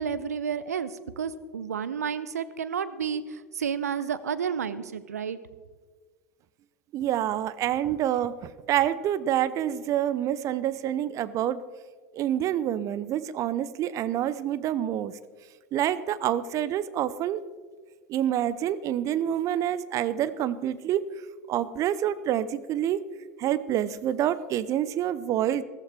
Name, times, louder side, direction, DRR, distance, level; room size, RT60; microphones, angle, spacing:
voice 1, 0.0-5.4, right 7 dB, 80° right, 14 dB, 0.7 m, -31 dB
voice 2, 6.9-8.3 8.7-11.6 12.1-15.1 15.7-17.4 18.1-21.0 21.5-23.0 23.4-25.6, right 11 dB, 40° right, 16 dB, 0.6 m, -27 dB
14.5 x 14.5 x 3.5 m, 1.5 s
figure-of-eight pair, 80°, 8 cm